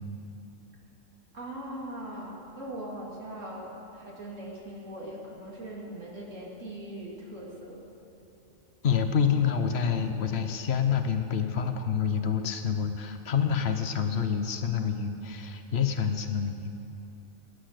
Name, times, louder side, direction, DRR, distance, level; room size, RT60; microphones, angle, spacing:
voice 1, 1.3-7.8, right 1 dB, 70° right, -4 dB, 2.9 m, -40 dB
voice 2, 8.8-16.7, left 7 dB, 55° left, 7 dB, 1.2 m, -27 dB
19.5 x 10.0 x 6.6 m, 3.0 s
omnidirectional pair, 1.4 m